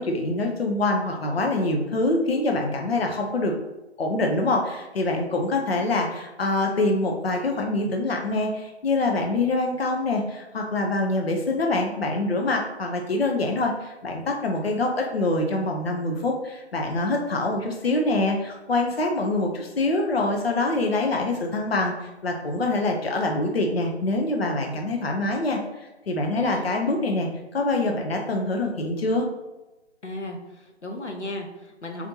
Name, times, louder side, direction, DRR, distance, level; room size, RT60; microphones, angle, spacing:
voice 1, 0.0-3.5 4.0-21.9 22.2-29.3, left 2 dB, 60° left, 2 dB, 0.8 m, -25 dB
voice 2, 26.3-26.7 30.0-32.1, left 2 dB, 90° left, 2 dB, 1.0 m, -35 dB
4.3 x 4.2 x 2.8 m, 1.0 s
figure-of-eight pair, 145°, 34 cm